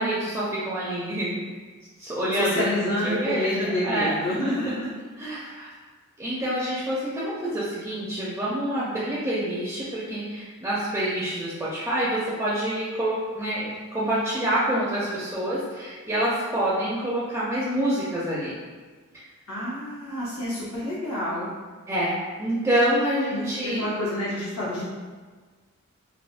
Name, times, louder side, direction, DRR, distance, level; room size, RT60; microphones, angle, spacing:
voice 1, 0.0-1.4 2.0-4.1 5.2-5.7 6.2-18.5 21.9-23.8, right 1 dB, 15° right, -8 dB, 0.4 m, -27 dB
voice 2, 2.3-4.9 19.5-21.5 23.3-24.8, left 1 dB, 75° left, -8 dB, 0.7 m, -28 dB
3.3 x 2.0 x 2.4 m, 1.4 s
head